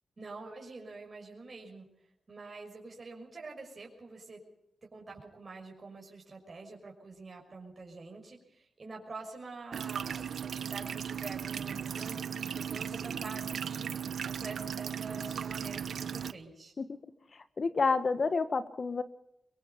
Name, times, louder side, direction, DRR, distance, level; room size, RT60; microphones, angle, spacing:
voice 1, 0.2-1.9 2.3-4.4 4.8-13.9 14.2-16.7, right 3 dB, 45° right, 0 dB, 5.9 m, -46 dB
sound 1, 9.7-16.3, right 8 dB, 75° right, 1.0 m, -37 dB
voice 2, 17.6-19.0, left 4 dB, 50° left, 11 dB, 1.6 m, -29 dB
23.0 x 22.5 x 5.4 m, 0.79 s
cardioid pair, 55°, 0 cm